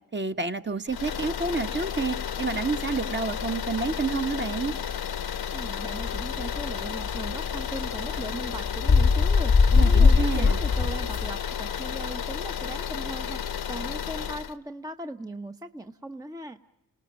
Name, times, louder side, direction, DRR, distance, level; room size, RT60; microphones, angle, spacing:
voice 1, 0.1-4.7 9.7-10.6, right 4 dB, 25° right, 7 dB, 1.3 m, -29 dB
sound 1, 0.9-14.5, left 8 dB, 65° left, 1.1 m, -32 dB
voice 2, 5.5-13.4 13.7-16.6, right 1 dB, 10° right, 7 dB, 0.9 m, -38 dB
sound 2, 6.0-11.3, left 5 dB, 40° left, 1.0 m, -21 dB
29.0 x 19.0 x 8.9 m, 1.0 s
cardioid pair, 55°, 41 cm